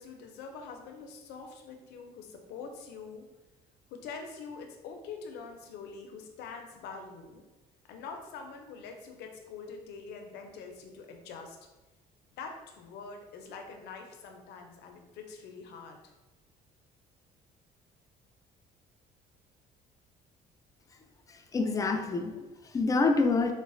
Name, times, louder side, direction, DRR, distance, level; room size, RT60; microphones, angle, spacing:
voice 1, 0.0-3.3 3.9-7.4 7.9-11.6 12.4-16.0, left 5 dB, 80° left, 4 dB, 0.5 m, -44 dB
voice 2, 21.3-23.5, left 3 dB, 20° left, 4 dB, 0.3 m, -27 dB
3.9 x 2.1 x 2.5 m, 1.1 s
cardioid pair, 110°, 17 cm